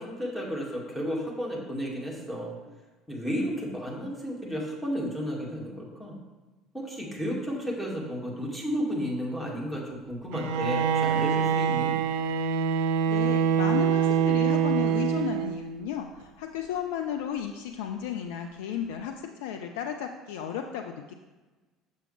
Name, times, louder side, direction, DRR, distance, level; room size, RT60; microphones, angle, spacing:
voice 1, 0.0-2.5 3.1-6.2 6.7-11.9, equal, 5° left, -3 dB, 2.1 m, -33 dB
Bowed string instrument, 10.3-15.7, right 8 dB, 65° right, 0.3 m, -25 dB
voice 2, 13.1-19.1 19.4-21.1, left 9 dB, 70° left, 5 dB, 0.3 m, -33 dB
6.7 x 6.1 x 3.3 m, 1.2 s
figure-of-eight pair, 60°, 0 cm